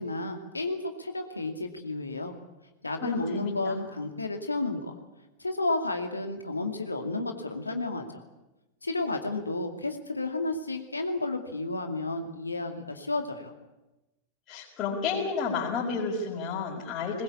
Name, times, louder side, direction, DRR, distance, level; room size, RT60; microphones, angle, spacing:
voice 1, 0.0-2.3 2.8-5.0 5.4-8.2 8.8-13.5, left 2 dB, 80° left, 5 dB, 2.4 m, -32 dB
voice 2, 3.0-3.8 14.5-17.2, left 5 dB, 35° left, -6 dB, 5.6 m, -31 dB
21.0 x 21.0 x 8.5 m, 1.0 s
figure-of-eight pair, 90°, 0 cm